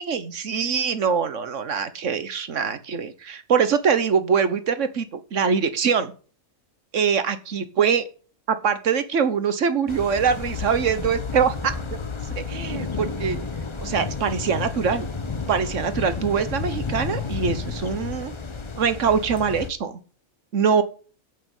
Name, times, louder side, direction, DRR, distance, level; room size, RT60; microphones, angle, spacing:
voice 1, 0.0-6.1 6.9-8.0 8.5-11.7 12.3-13.4 13.8-15.1 15.5-18.3 18.8-20.0 20.5-20.8, right 6 dB, 65° right, 12 dB, 1.5 m, -23 dB
sound 1, 9.9-19.7, left 4 dB, 25° left, 0.7 m, -31 dB
8.6 x 8.1 x 8.2 m, 0.40 s
omnidirectional pair, 1.4 m